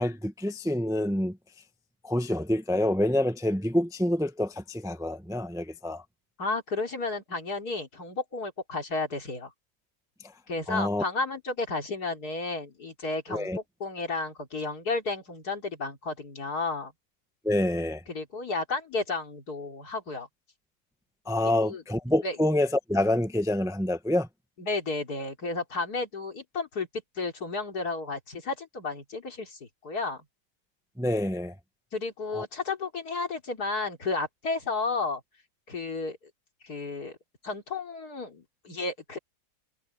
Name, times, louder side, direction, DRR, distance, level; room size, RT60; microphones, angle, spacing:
voice 1, 0.0-1.4 2.0-6.0 10.7-11.0 13.3-13.6 17.4-18.0 21.3-24.3 31.0-31.5 32.3-32.4, left 1 dB, 5° right, 0.9 m, -27 dB
voice 2, 6.4-9.5 10.5-16.9 18.1-20.3 21.6-21.8 22.2-22.4 24.6-26.9 27.2-30.2 31.9-35.2 35.7-36.2 36.6-37.2 37.4-39.2, left 3 dB, 70° left, 3.7 m, -32 dB
omnidirectional pair, 1.7 m